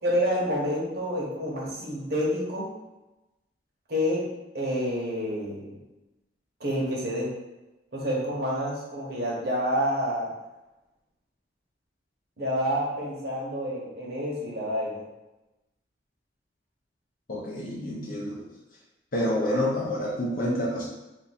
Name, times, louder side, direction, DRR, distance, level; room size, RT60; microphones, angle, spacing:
voice 1, 0.0-2.7 3.9-4.2 4.5-5.8 6.6-7.3 7.9-10.3 12.4-15.0, equal, 60° right, -5 dB, 1.0 m, -28 dB
voice 2, 17.3-18.4 19.1-20.8, left 1 dB, 50° left, -4 dB, 0.5 m, -28 dB
2.6 x 2.6 x 4.1 m, 1.0 s
head